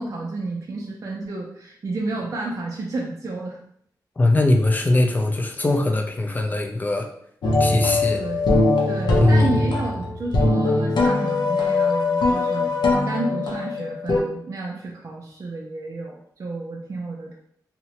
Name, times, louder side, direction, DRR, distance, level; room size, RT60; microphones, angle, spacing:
voice 1, 0.0-3.6 8.1-12.7 13.1-17.4, right 2 dB, 45° right, -2 dB, 0.4 m, -31 dB
voice 2, 4.2-7.1 7.6-8.2 9.2-9.6, left 2 dB, 25° left, 3 dB, 0.4 m, -21 dB
sound 1, 7.4-14.2, left 2 dB, 80° left, 0.5 m, -21 dB
2.8 x 2.1 x 2.8 m, 0.67 s
wide cardioid pair, 120°, 7 cm